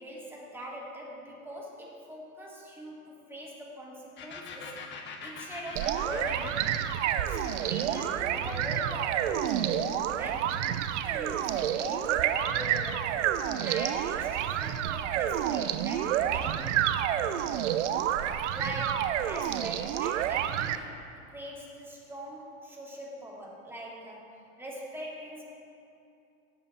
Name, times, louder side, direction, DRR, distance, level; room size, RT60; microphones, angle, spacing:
voice 1, 0.0-4.7 5.2-6.8 7.3-10.6 11.0-16.9 18.5-21.0 21.3-25.4, equal, 5° right, -4 dB, 2.4 m, -42 dB
sound 1, 4.2-11.7, left 5 dB, 25° left, 1.2 m, -45 dB
sound 2, 5.8-20.8, right 10 dB, 60° right, 0.7 m, -29 dB
18.0 x 7.1 x 4.2 m, 2.6 s
hypercardioid pair, 120°, 41 cm